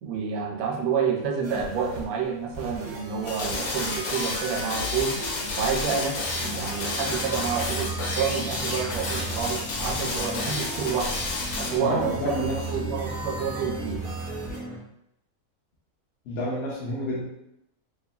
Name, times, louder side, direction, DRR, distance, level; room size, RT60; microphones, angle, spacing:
voice 1, 0.0-5.2 5.6-11.2 11.6-14.0, right 6 dB, 90° right, 1 dB, 1.0 m, -29 dB
sound 1, 1.4-14.6, equal, 60° right, 0.7 m, -38 dB
sound 2, 3.3-11.8, left 3 dB, 85° left, 1.1 m, -31 dB
sound 3, 6.2-14.8, right 3 dB, 5° right, 0.4 m, -36 dB
voice 2, 11.8-12.6 16.3-17.2, left 1 dB, 65° left, -5 dB, 0.6 m, -29 dB
2.7 x 2.3 x 2.3 m, 0.80 s
omnidirectional pair, 1.5 m